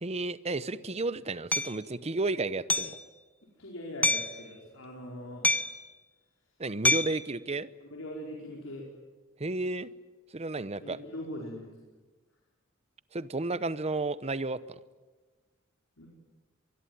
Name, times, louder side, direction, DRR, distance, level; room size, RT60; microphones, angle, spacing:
voice 1, 0.0-2.9 6.6-7.7 9.4-9.9 10.3-11.0 13.1-14.8, right 2 dB, 30° right, 15 dB, 0.9 m, -32 dB
Hammer, 1.5-1.7 2.7-3.0 4.0-4.4 5.4-5.9 6.8-7.2, left 2 dB, 10° left, 0.7 m, -26 dB
voice 2, 3.6-5.6 7.8-8.9 10.8-11.7 16.0-16.1, left 1 dB, 85° left, -1 dB, 4.9 m, -41 dB
24.5 x 21.0 x 9.5 m, 1.3 s
head